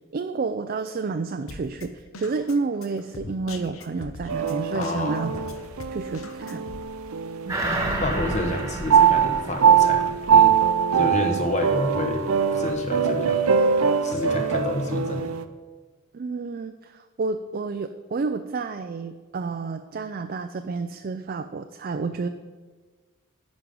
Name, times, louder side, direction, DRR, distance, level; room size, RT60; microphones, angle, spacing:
voice 1, 0.1-5.3 5.9-6.7 7.5-7.6 11.2-11.4 16.1-22.3, right 4 dB, 40° right, 8 dB, 0.3 m, -30 dB
Drum kit, 1.5-6.8, left 2 dB, 70° left, 0.9 m, -41 dB
sound 1, 4.3-7.8 8.1-15.4, right 7 dB, 85° right, 0.6 m, -22 dB
voice 2, 4.7-5.3 8.0-10.5 10.9-13.4 14.0-15.3, left 1 dB, 35° left, 4 dB, 1.1 m, -29 dB
sound 2, 7.5-10.4 10.8-10.9, right 1 dB, 15° right, 1.3 m, -30 dB
10.5 x 5.3 x 7.6 m, 1.4 s
head